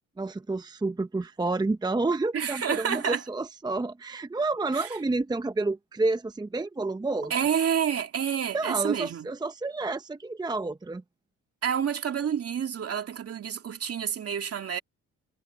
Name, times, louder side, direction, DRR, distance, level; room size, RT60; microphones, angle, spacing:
voice 1, 0.2-7.3 8.5-11.0, right 3 dB, 15° right, 0.8 m, -29 dB
voice 2, 2.3-3.2 4.7-4.9 7.3-9.3 11.6-14.8, right 8 dB, 50° right, 2.4 m, -28 dB
cardioid pair, 90°, 30 cm